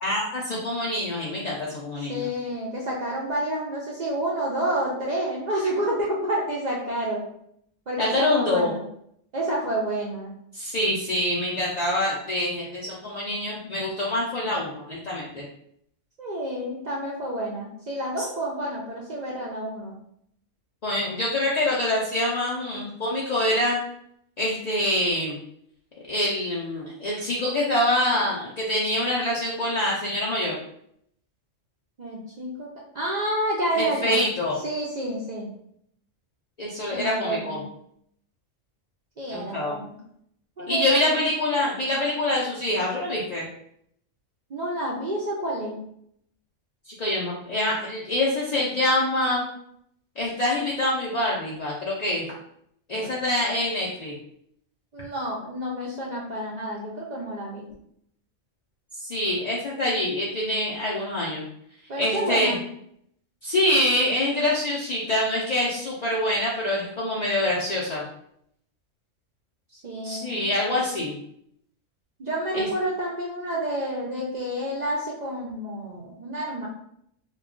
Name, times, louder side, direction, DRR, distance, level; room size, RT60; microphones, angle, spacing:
voice 1, 0.0-2.3 8.0-8.7 10.5-15.4 20.8-23.8 24.4-25.4 26.1-30.6 33.8-34.6 36.6-37.6 39.3-39.8 40.7-43.5 47.0-49.5 50.2-52.3 52.9-54.1 59.0-61.4 62.0-62.5 63.4-68.0 70.0-71.1 72.5-72.7, left 1 dB, 75° left, -5 dB, 0.3 m, -25 dB
voice 2, 2.0-7.3 7.9-8.8 9.3-10.3 16.2-19.9 32.0-32.7 32.9-34.2 34.6-35.5 36.9-37.6 39.2-40.0 40.6-41.0 44.5-45.8 52.9-53.3 54.9-57.6 61.9-62.6 69.7-70.4 72.2-76.7, right 1 dB, 70° right, -4 dB, 0.4 m, -29 dB
2.2 x 2.2 x 3.6 m, 0.71 s
omnidirectional pair, 1.3 m